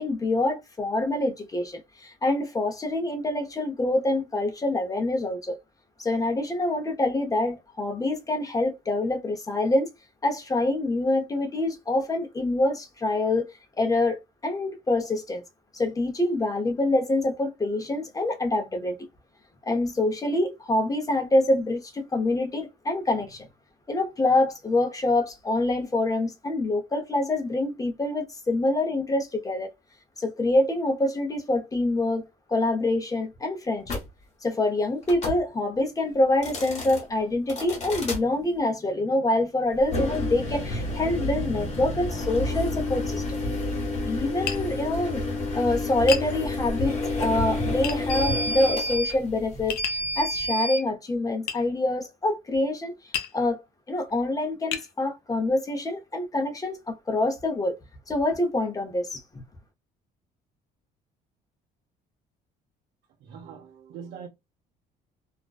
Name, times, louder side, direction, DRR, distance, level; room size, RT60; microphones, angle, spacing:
voice 1, 0.0-5.6 6.0-9.9 10.2-15.4 15.7-19.0 19.7-23.5 23.9-29.7 30.2-32.2 32.5-34.0 34.4-43.2 44.0-45.2 45.5-52.9 53.3-53.6 53.9-57.8 58.1-59.2, left 2 dB, 20° left, 0.7 m, -26 dB
sound 1, 33.8-34.1 35.0-35.4 36.3-37.0 37.5-38.2 39.8-50.8, left 1 dB, 40° left, 1.1 m, -29 dB
Tap, 44.5-44.7 46.1-46.3 47.8-48.0 49.7-50.1 51.5-51.6 53.1-53.4 54.1-54.2 54.7-54.9, left 9 dB, 70° left, 0.5 m, -30 dB
voice 2, 63.2-64.3, right 7 dB, 75° right, 0.6 m, -42 dB
2.4 x 2.2 x 2.3 m
cardioid pair, 110°, 17 cm